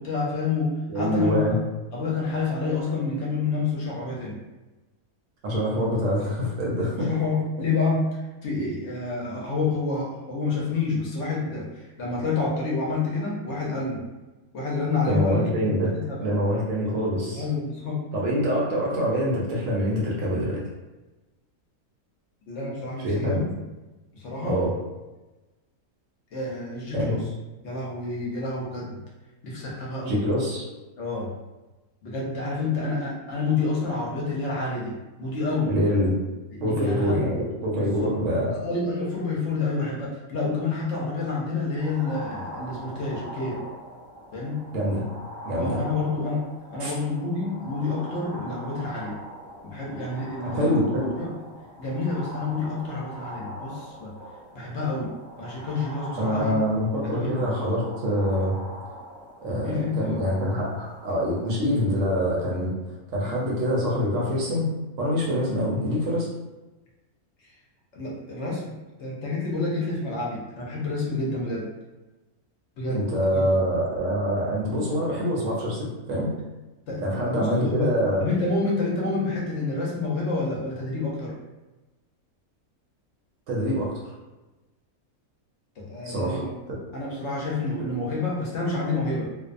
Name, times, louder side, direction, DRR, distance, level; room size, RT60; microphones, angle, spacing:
voice 1, 0.0-1.4 1.9-4.4 7.0-14.0 14.5-16.4 17.3-18.0 22.5-23.5 24.1-24.6 26.3-27.2 27.6-29.0 29.4-30.2 31.0-31.3 32.0-35.7 36.5-37.2 37.7-38.1 38.5-43.6 44.3-44.6 45.5-46.4 46.7-49.2 49.6-50.8 51.2-51.3 51.8-54.1 54.5-56.5 57.0-57.5 59.6-60.2 67.9-68.6 69.0-71.7 72.8-73.1 73.3-73.5 76.9-77.9 78.2-81.3 85.8-86.5 86.9-89.3, left 3 dB, 60° left, -4 dB, 0.8 m, -28 dB
voice 2, 0.9-1.6 5.4-7.1 15.0-15.9 16.2-17.4 18.1-20.6 23.0-23.4 24.4-24.7 26.9-27.1 30.1-30.6 35.7-36.1 36.6-38.5 44.7-45.0 45.5-45.8 46.8-46.9 50.4-51.2 56.2-58.6 59.4-62.7 63.1-64.7 65.0-66.3 72.9-76.3 77.0-78.2 83.5-83.9 86.0-86.4 86.7-86.8, equal, 70° right, -4 dB, 0.9 m, -25 dB
sound 1, 41.8-61.6, equal, 30° left, 0.7 m, -42 dB
2.5 x 2.0 x 2.4 m, 1.1 s
omnidirectional pair, 1.5 m